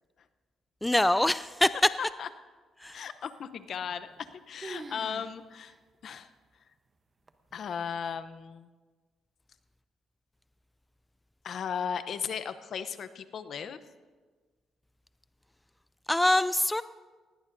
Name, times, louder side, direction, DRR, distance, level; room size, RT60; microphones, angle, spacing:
voice 1, 0.8-1.7 2.8-2.9 16.1-16.8, left 1 dB, 10° left, 15 dB, 0.3 m, -24 dB
voice 2, 2.0-2.3 2.9-5.7 6.0-6.3 7.5-8.7 11.4-13.8, left 7 dB, 60° left, 12 dB, 0.7 m, -36 dB
sound 1, 3.8-4.3 4.6-5.3 5.7-5.8 6.4-6.5 7.3-7.7, right 3 dB, 30° right, 0.9 m, -44 dB
19.5 x 17.0 x 2.7 m, 1.4 s
cardioid pair, 90°, 0 cm